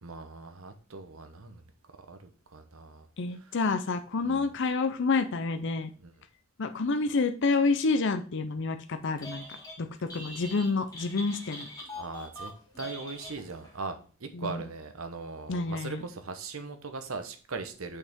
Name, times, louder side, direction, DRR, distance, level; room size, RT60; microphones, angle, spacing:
voice 1, 0.0-1.6 2.1-3.1 3.4-3.6 4.2-4.5 6.0-6.1 11.9-12.5 12.8-18.0, right 4 dB, 75° right, 8 dB, 1.0 m, -40 dB
voice 2, 3.2-5.9 6.6-9.4 9.8-9.9 10.1-11.7 14.3-14.6 15.5-16.0, left 4 dB, 55° left, 8 dB, 0.6 m, -28 dB
Telephone, 9.0-9.8 10.1-13.8, left 1 dB, 20° left, 1.7 m, -43 dB
6.7 x 5.5 x 3.6 m, 0.39 s
head